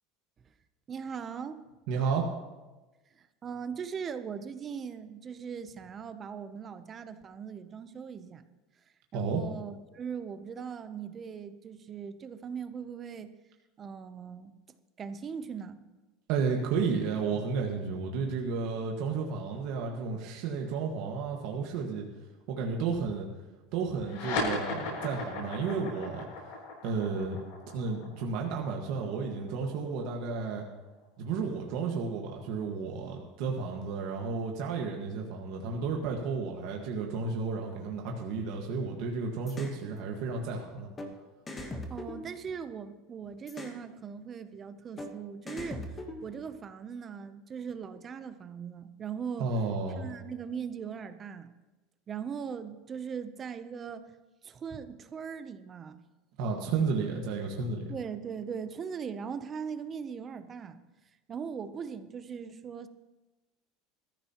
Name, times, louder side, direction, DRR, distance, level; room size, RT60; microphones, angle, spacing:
voice 1, 0.9-1.6 3.2-8.4 9.1-13.3 13.8-14.5 15.0-15.8 41.9-45.8 46.2-49.5 50.0-51.5 52.1-54.1 54.4-56.0 57.9-60.8 61.3-62.9, right 6 dB, 20° right, 12 dB, 0.6 m, -39 dB
voice 2, 1.9-2.3 9.1-9.4 16.3-22.0 22.5-23.3 23.7-26.3 26.8-27.4 27.7-30.6 31.2-40.9 49.4-50.1 56.4-57.9, right 5 dB, 50° right, 0 dB, 1.5 m, -32 dB
sound 1, 24.0-30.9, left 3 dB, 65° left, 6.0 m, -37 dB
sound 2, 39.5-39.8 41.0-41.1 41.5-42.9 43.5-43.8 45.0-45.1 45.5-46.6, left 1 dB, 15° left, 1.1 m, -40 dB
21.0 x 14.0 x 2.9 m, 1.1 s
cardioid pair, 180°, 0 cm